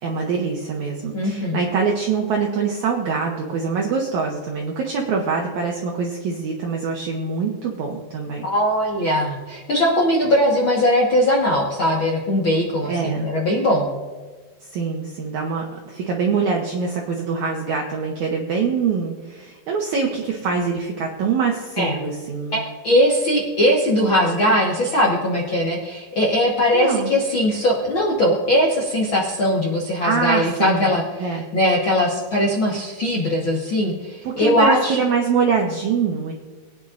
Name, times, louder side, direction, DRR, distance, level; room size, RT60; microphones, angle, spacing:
voice 1, 0.0-8.5 12.9-13.3 14.6-22.6 26.7-27.1 30.0-30.9 31.2-31.5 34.2-36.3, right 5 dB, 70° right, 0 dB, 1.9 m, -24 dB
voice 2, 1.1-1.6 8.4-13.9 21.8-22.0 22.5-35.0, left 1 dB, 75° left, -2 dB, 1.1 m, -20 dB
21.0 x 9.5 x 2.5 m, 1.3 s
omnidirectional pair, 4.4 m